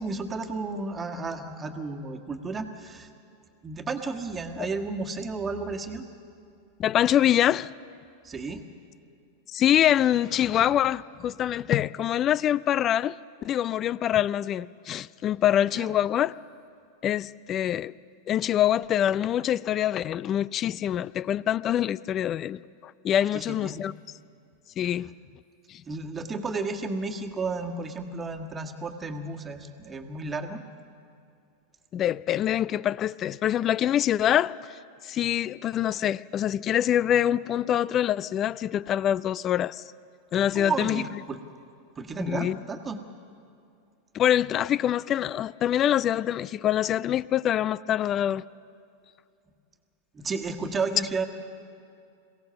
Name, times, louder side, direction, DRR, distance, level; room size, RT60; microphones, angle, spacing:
voice 1, 0.0-3.1 3.6-6.0 8.2-8.6 15.7-15.9 23.3-23.8 25.9-30.6 40.5-41.4 41.9-43.0 50.1-51.3, right 3 dB, 20° right, 1.6 m, -32 dB
voice 2, 6.8-7.7 9.5-13.2 13.4-16.3 17.0-17.9 18.3-23.9 24.8-25.1 25.7-25.8 31.9-34.6 35.0-39.8 40.3-41.0 42.2-42.6 44.1-48.4, left 11 dB, 35° left, 0.4 m, -25 dB
22.5 x 17.0 x 6.9 m
hypercardioid pair, 100°, 0 cm